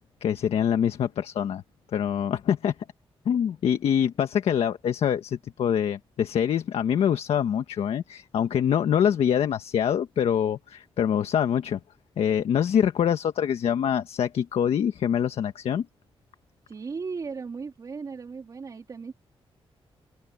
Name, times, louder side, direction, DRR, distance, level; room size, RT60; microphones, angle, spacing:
voice 1, 0.2-1.6 1.9-2.7 3.2-11.8 12.2-15.8, left 8 dB, 85° left, 1.5 m, -25 dB
voice 2, 16.7-19.1, right 5 dB, 35° right, 3.6 m, -36 dB
wide cardioid pair, 175°, 10 cm